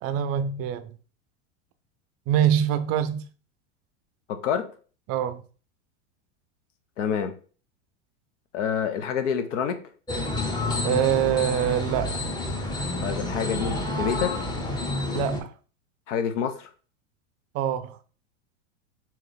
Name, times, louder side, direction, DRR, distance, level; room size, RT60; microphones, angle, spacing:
voice 1, 0.0-0.9 2.3-3.3 5.1-5.4 10.8-12.1 15.1-15.5 17.5-18.0, right 10 dB, 40° right, 0.4 m, -24 dB
voice 2, 4.3-4.7 7.0-7.3 8.5-9.8 13.0-14.4 16.1-16.7, left 7 dB, 75° left, 0.8 m, -27 dB
sound 1, 10.1-15.4, left 2 dB, 10° left, 0.7 m, -29 dB
3.1 x 3.0 x 3.9 m
hypercardioid pair, 105°, 37 cm